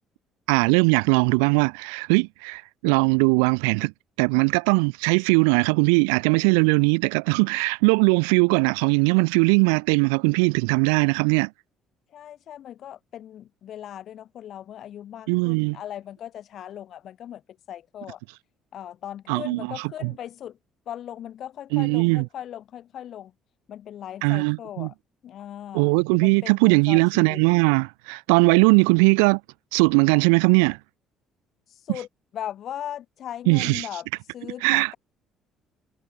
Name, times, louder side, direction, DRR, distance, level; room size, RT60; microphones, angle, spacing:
voice 1, 0.5-3.9 4.2-11.5 15.3-15.8 19.3-19.6 20.0-20.1 21.7-22.3 24.2-24.9 25.7-29.4 29.7-30.8 33.5-33.9 34.6-34.9, right 39 dB, 85° right, 0.4 m, -20 dB
voice 2, 12.1-17.4 17.7-18.2 18.7-20.6 20.9-23.3 23.7-24.9 25.2-27.4 31.7-32.1 32.3-34.1 34.3-35.0, left 11 dB, 60° left, 2.4 m, -38 dB
hypercardioid pair, 65°, 0 cm